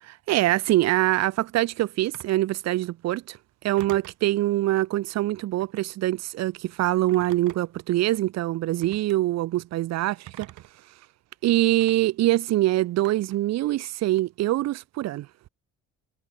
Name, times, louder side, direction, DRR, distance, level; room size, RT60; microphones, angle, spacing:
voice 1, 0.0-3.4 3.6-10.5 11.4-15.3, right 15 dB, 60° right, 0.4 m, -24 dB
Telephone, 2.1-2.5 3.8-4.3 5.5-5.9 7.1-7.8 8.8-9.2 10.3-10.8 11.8-11.9 13.0-13.5, right 15 dB, 90° right, 4.1 m, -45 dB
cardioid pair, 90°, 30 cm